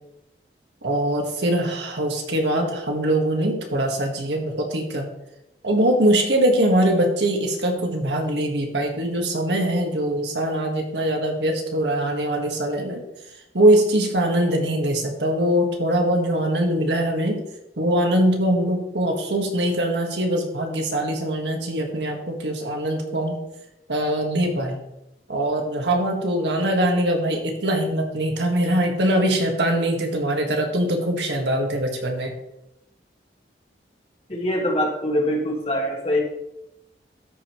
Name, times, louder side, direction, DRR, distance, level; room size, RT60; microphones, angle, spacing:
voice 1, 0.8-5.1 5.6-13.0 13.5-17.4 17.8-23.4 23.9-24.8 25.3-32.3, right 1 dB, 80° right, 2 dB, 1.5 m, -22 dB
voice 2, 34.3-36.2, left 1 dB, 35° left, 0 dB, 1.7 m, -23 dB
13.0 x 5.2 x 3.0 m, 0.86 s
head